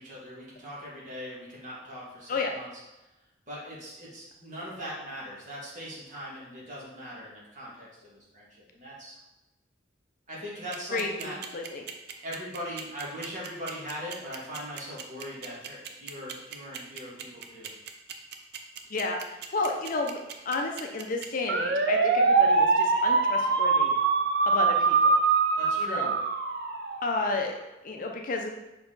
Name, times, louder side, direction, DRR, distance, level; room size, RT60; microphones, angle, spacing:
voice 1, 0.0-2.7 3.5-9.2 10.3-11.4 12.2-17.7 25.6-26.1, equal, 40° right, -6 dB, 2.1 m, -40 dB
sound 1, 10.7-27.2, right 4 dB, 55° right, 0.6 m, -24 dB
voice 2, 10.9-11.8 18.9-19.2 19.5-20.2 20.5-23.9 24.5-25.1 25.8-26.1 27.0-27.6 27.8-28.5, left 3 dB, 45° left, 2 dB, 0.6 m, -31 dB
5.6 x 4.6 x 3.9 m, 1.0 s
head